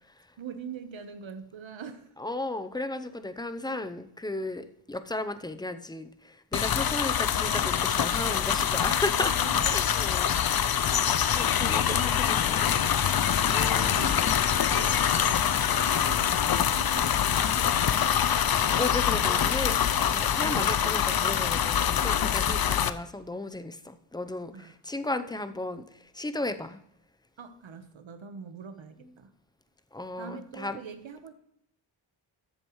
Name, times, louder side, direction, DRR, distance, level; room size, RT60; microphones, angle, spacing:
voice 1, 0.4-2.1 3.7-3.8 9.1-9.8 11.8-13.3 13.9-18.1 24.5-24.7 27.4-29.3 30.2-31.3, right 5 dB, 70° right, 9 dB, 1.3 m, -43 dB
voice 2, 2.2-9.3 9.6-12.8 13.4-14.3 18.6-26.8 29.9-30.8, left 2 dB, 10° left, 10 dB, 0.7 m, -35 dB
sound 1, 6.5-22.9, left 9 dB, 50° left, 0.6 m, -25 dB
13.5 x 7.8 x 3.2 m, 0.75 s
cardioid pair, 70°, 48 cm